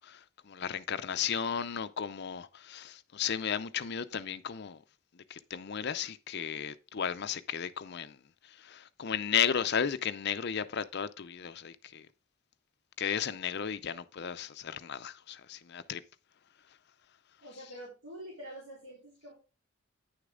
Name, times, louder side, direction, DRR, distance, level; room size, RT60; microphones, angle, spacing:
voice 1, 0.0-4.8 5.3-8.2 8.5-12.1 13.0-16.0, left 8 dB, 50° left, 0.5 m, -34 dB
voice 2, 17.4-19.3, right 1 dB, 80° right, 3.9 m, -46 dB
9.5 x 6.6 x 3.7 m
head